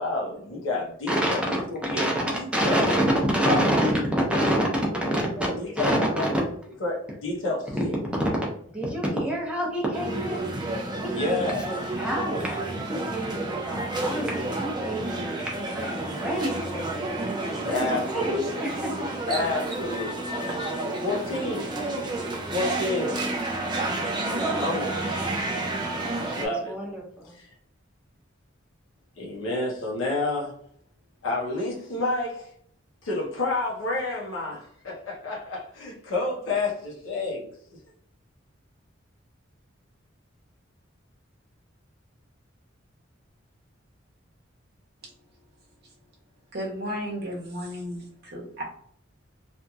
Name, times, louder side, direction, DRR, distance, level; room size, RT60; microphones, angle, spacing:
voice 1, 0.0-1.4 1.9-2.1 2.4-2.9 3.5-3.6 5.6-6.2 6.8-7.9 11.1-11.6 17.7-18.5 19.3-20.4 20.8-21.7 22.5-23.2 24.3-25.1 26.3-26.7 29.2-30.5 31.2-32.5 33.0-37.5, left 2 dB, 80° left, -3 dB, 0.8 m, -29 dB
voice 2, 1.1-6.5 7.7-7.8 8.0-8.3 8.7-10.7 11.0-12.6 12.9-17.1 17.7-19.2 26.3-27.4, equal, 5° right, -3 dB, 0.7 m, -27 dB
sound 1, 9.9-26.5, right 2 dB, 20° right, 0.3 m, -30 dB
voice 3, 46.5-48.6, equal, 55° right, -3 dB, 0.9 m, -34 dB
2.9 x 2.5 x 2.3 m, 0.66 s
head